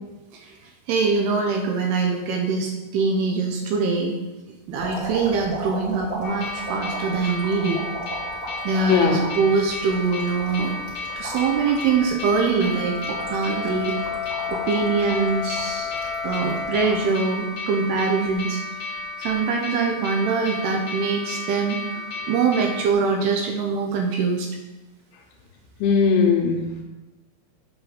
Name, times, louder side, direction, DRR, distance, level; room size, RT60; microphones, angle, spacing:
voice 1, 0.9-4.2 4.7-7.8 8.7-10.7 11.2-14.0 14.5-15.9 16.2-18.6 19.2-21.8 22.3-24.5, right 5 dB, 80° right, 2 dB, 2.5 m, -23 dB
sound 1, 4.8-17.1 17.6-18.3 19.3-19.5, right 1 dB, 25° right, 0.8 m, -36 dB
sound 2, 6.2-22.9, left 3 dB, 60° left, 1.6 m, -33 dB
voice 2, 8.9-9.2 25.8-26.8, left 5 dB, 75° left, 2 dB, 2.6 m, -19 dB
Wind instrument woodwind instrument, 12.4-17.1, left 7 dB, 65° right, 3.1 m, -32 dB
8.0 x 6.7 x 3.7 m, 1.1 s
omnidirectional pair, 5.1 m